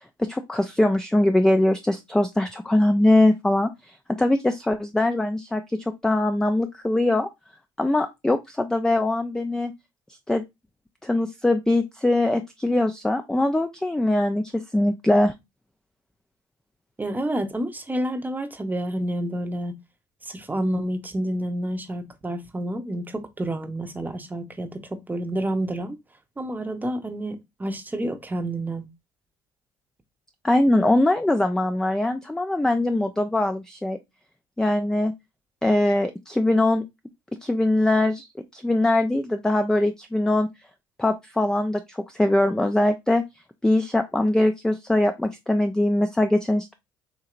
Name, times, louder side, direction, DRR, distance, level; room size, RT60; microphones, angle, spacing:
voice 1, 0.2-7.3 7.8-9.7 10.3-10.4 11.0-15.3 30.4-34.0 34.6-35.1 35.6-36.8 37.4-38.3 38.5-40.5 41.0-43.2 43.6-46.7, left 1 dB, 5° left, 0.4 m, -22 dB
voice 2, 17.0-19.8 20.3-26.0 26.4-28.9, right 1 dB, 15° right, 0.8 m, -29 dB
4.3 x 2.8 x 2.4 m
hypercardioid pair, 65°, 13 cm